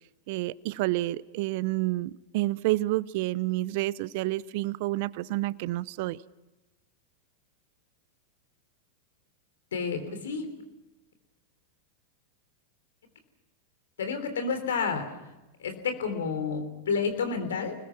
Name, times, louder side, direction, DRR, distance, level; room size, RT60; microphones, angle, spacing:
voice 1, 0.3-6.2, right 18 dB, 55° right, 20 dB, 0.7 m, -29 dB
voice 2, 9.7-10.5 14.0-15.1 15.6-17.7, left 5 dB, 75° left, 8 dB, 3.5 m, -30 dB
29.5 x 20.5 x 6.0 m, 1.0 s
hypercardioid pair, 95°, 0 cm